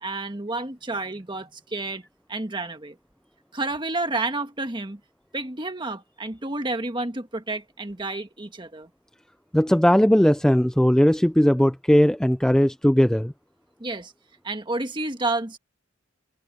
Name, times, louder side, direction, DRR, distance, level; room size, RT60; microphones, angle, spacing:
voice 1, 0.0-2.0 2.3-3.0 3.5-5.0 5.3-8.9 13.8-14.1 14.4-15.6, right 2 dB, 20° right, 1.4 m, -30 dB
voice 2, 9.5-13.3, equal, 5° left, 0.4 m, -18 dB
head